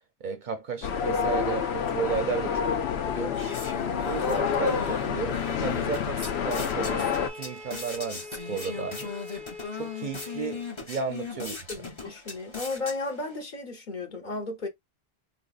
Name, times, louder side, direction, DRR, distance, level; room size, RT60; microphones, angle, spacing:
voice 1, 0.2-2.7 3.0-3.5 4.1-9.1 9.7-11.9, right 5 dB, 55° right, 0.6 m, -33 dB
sound 1, 0.8-7.3, left 7 dB, 90° left, 0.8 m, -28 dB
sound 2, 2.9-13.4, left 4 dB, 30° left, 0.8 m, -39 dB
Bowed string instrument, 6.2-10.8, left 2 dB, ahead, 0.4 m, -43 dB
voice 2, 11.4-14.7, left 3 dB, 50° left, 1.0 m, -34 dB
4.0 x 2.6 x 2.3 m
omnidirectional pair, 1.0 m